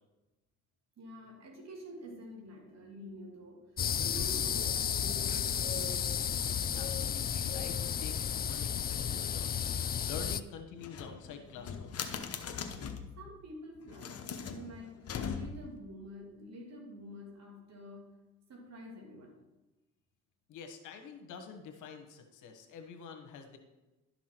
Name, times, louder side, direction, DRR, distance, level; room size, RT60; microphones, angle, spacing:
voice 1, 1.0-3.7 4.0-6.1 13.2-18.1 18.5-19.4, equal, 60° right, 0 dB, 2.6 m, -48 dB
sound 1, 3.8-10.4, left 8 dB, 30° left, 0.4 m, -33 dB
voice 2, 6.7-12.3 20.5-23.6, left 6 dB, 85° left, 6 dB, 1.3 m, -47 dB
sound 2, 10.8-13.2 13.8-15.8, left 6 dB, 50° left, 1.0 m, -40 dB
11.5 x 6.0 x 4.5 m, 1.1 s
cardioid pair, 90°, 30 cm